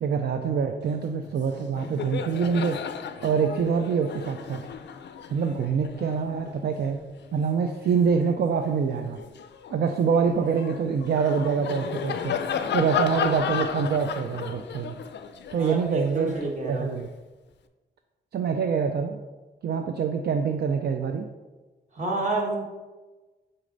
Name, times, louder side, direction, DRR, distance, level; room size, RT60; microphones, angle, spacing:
voice 1, 0.0-2.8 3.2-4.7 5.3-7.0 7.3-9.2 9.7-12.4 12.7-15.0 15.5-17.1 18.3-19.2 19.6-21.3, right 6 dB, 65° right, 6 dB, 0.4 m, -25 dB
Laughter, 1.2-1.4 1.7-8.4 8.9-17.1, left 7 dB, 75° left, 0.4 m, -34 dB
voice 2, 15.6-16.9 21.9-22.6, right 2 dB, 40° right, -1 dB, 1.2 m, -29 dB
6.4 x 4.2 x 3.9 m, 1.2 s
wide cardioid pair, 135°, 18 cm